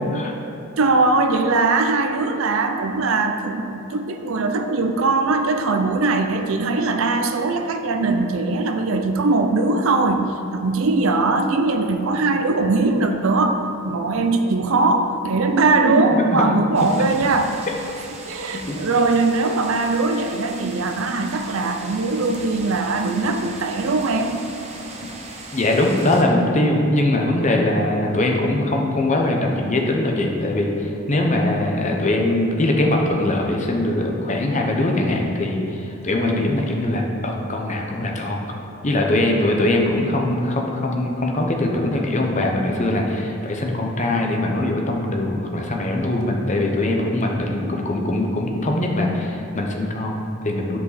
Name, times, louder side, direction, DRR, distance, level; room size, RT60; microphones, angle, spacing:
voice 1, 0.8-10.2 10.5-17.5 18.3-24.4, right 3 dB, 65° right, 5 dB, 0.5 m, -20 dB
voice 2, 15.9-16.4 18.7-18.8 25.5-38.4 38.8-50.8, left 1 dB, 30° left, 1 dB, 0.8 m, -21 dB
sound 1, 16.7-26.2, right 2 dB, 30° right, 0.7 m, -38 dB
9.9 x 4.9 x 4.1 m, 2.6 s
head